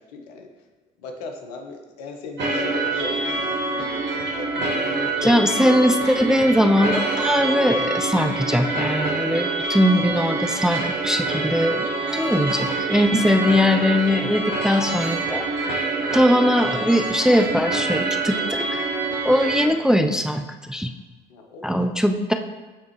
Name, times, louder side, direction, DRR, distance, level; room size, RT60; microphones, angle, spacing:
voice 1, 0.1-0.5 1.0-4.0 4.4-5.1 5.4-5.8 21.3-21.9, left 4 dB, 80° left, 3 dB, 0.8 m, -36 dB
sound 1, 2.4-19.7, right 3 dB, 60° right, 1.2 m, -26 dB
voice 2, 5.2-11.9 12.1-15.8 16.1-18.4 19.2-20.9 21.6-22.3, equal, 5° right, 6 dB, 0.4 m, -20 dB
9.1 x 3.6 x 3.1 m, 1.3 s
hypercardioid pair, 55°, 20 cm